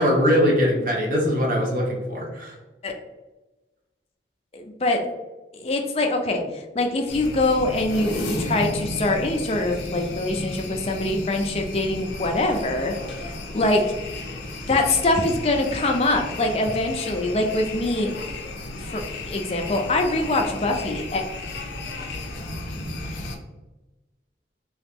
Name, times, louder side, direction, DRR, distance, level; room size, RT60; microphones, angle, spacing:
voice 1, 0.0-2.5, equal, 50° right, -1 dB, 0.6 m, -21 dB
voice 2, 4.5-5.0 5.5-13.0 13.3-13.8 14.7-18.1 18.8-21.2, left 2 dB, 35° left, 3 dB, 0.4 m, -24 dB
sound 1, 7.1-23.4, left 2 dB, 85° left, 0.6 m, -33 dB
2.9 x 2.4 x 3.5 m, 1.1 s
head